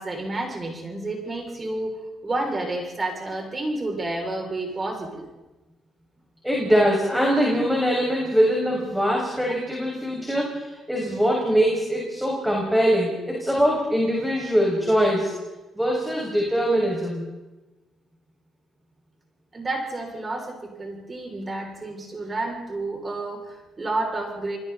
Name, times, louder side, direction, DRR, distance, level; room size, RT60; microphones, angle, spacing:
voice 1, 0.0-5.3 19.5-24.6, right 2 dB, 30° right, 1 dB, 7.0 m, -30 dB
voice 2, 6.4-15.3 15.8-17.3, equal, 5° right, -3 dB, 6.9 m, -22 dB
29.5 x 21.0 x 4.4 m, 1.1 s
cardioid pair, 90°, 0 cm